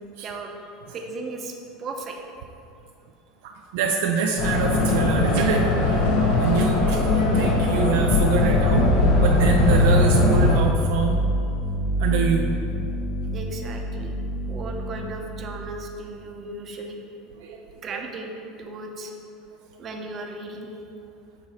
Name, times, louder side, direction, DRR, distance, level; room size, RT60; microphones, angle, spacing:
voice 1, 0.2-0.6 0.9-1.5 1.8-2.2 13.3-14.1 14.5-17.0 17.8-18.3 18.6-19.1 19.8-20.8, right 2 dB, 40° right, 2 dB, 0.8 m, -36 dB
voice 2, 3.4-8.9 9.2-11.2 12.0-12.5 17.4-17.6 17.9-18.0, right 5 dB, 75° right, 2 dB, 0.4 m, -25 dB
sound 1, 4.4-10.6, left 2 dB, 75° left, 1.0 m, -20 dB
sound 2, 8.2-15.9, right 1 dB, 25° left, 1.4 m, -27 dB
7.4 x 3.1 x 4.2 m, 2.6 s
hypercardioid pair, 95°, 0 cm